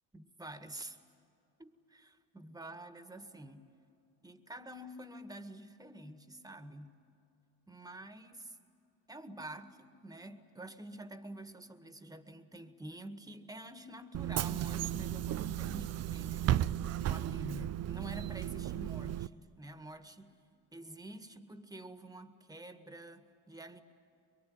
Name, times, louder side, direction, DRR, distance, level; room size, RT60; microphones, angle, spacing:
voice 1, 0.1-1.0 1.6-3.7 4.2-6.9 7.7-8.6 9.1-16.6 17.1-20.3 20.7-23.8, right 1 dB, 10° right, 9 dB, 1.8 m, -48 dB
Bus / Engine, 14.1-19.3, right 12 dB, 45° right, 0.5 m, -34 dB
23.5 x 23.0 x 9.6 m, 2.7 s
supercardioid pair, 75°, 37 cm